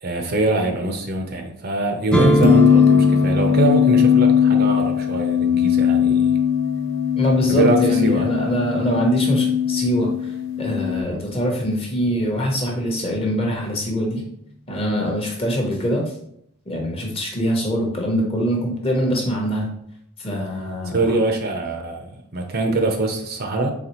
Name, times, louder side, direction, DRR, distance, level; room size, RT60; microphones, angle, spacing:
voice 1, 0.0-6.3 7.5-8.3 20.8-23.7, right 2 dB, 45° right, 4 dB, 0.5 m, -23 dB
sound 1, 2.1-9.9, equal, 5° left, 0.4 m, -25 dB
sound 2, 2.4-11.0, left 9 dB, 65° left, 0.5 m, -19 dB
voice 2, 7.2-10.3 10.6-14.2 14.7-16.0 16.7-19.7 20.2-21.2, equal, 25° left, 0 dB, 0.8 m, -23 dB
4.0 x 3.5 x 3.0 m, 0.71 s
head